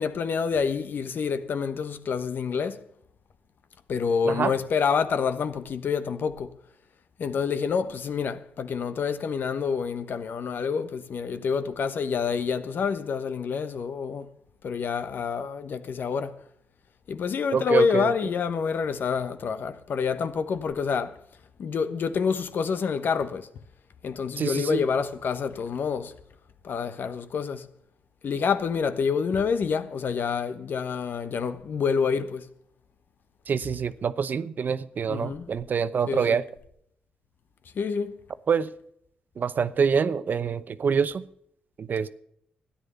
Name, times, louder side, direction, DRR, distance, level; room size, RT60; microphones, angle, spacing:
voice 1, 0.0-2.8 3.9-6.5 7.2-14.3 14.6-16.4 17.1-21.2 21.6-23.5 24.0-26.1 26.6-27.7 28.2-32.5 35.1-35.5 36.1-36.4 37.7-38.2, left 6 dB, 65° left, 1.1 m, -27 dB
voice 2, 17.5-18.3 24.4-24.8 33.5-36.4 38.5-38.7 39.4-41.2 41.8-42.1, right 6 dB, 55° right, 0.8 m, -26 dB
13.0 x 10.0 x 6.9 m
cardioid pair, 75°, 4 cm